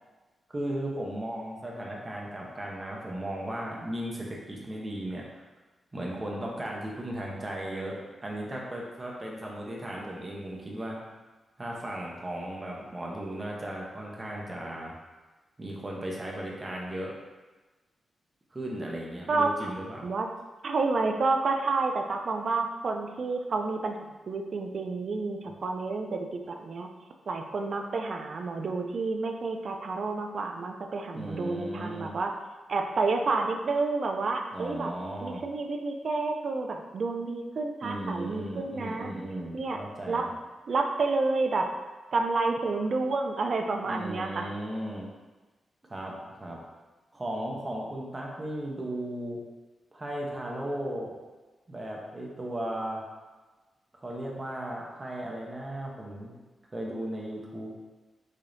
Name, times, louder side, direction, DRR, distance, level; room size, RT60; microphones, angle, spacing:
voice 1, 0.5-5.2 5.9-11.0 11.6-14.9 15.6-17.2 18.5-20.1 31.1-32.2 34.5-35.4 37.8-40.3 43.9-45.1 45.8-46.6 47.1-49.4 49.9-51.2 51.7-53.0 54.0-56.4 56.7-57.7, right 1 dB, 25° right, -2 dB, 0.8 m, -36 dB
voice 2, 19.3-19.7 20.0-20.3 20.6-24.0 24.3-26.9 27.3-32.3 32.7-34.9 35.2-39.1 39.5-39.8 40.1-40.3 40.7-41.7 42.1-44.5, right 3 dB, 55° right, 4 dB, 0.4 m, -29 dB
4.9 x 2.7 x 2.6 m, 1.2 s
cardioid pair, 95°, 0 cm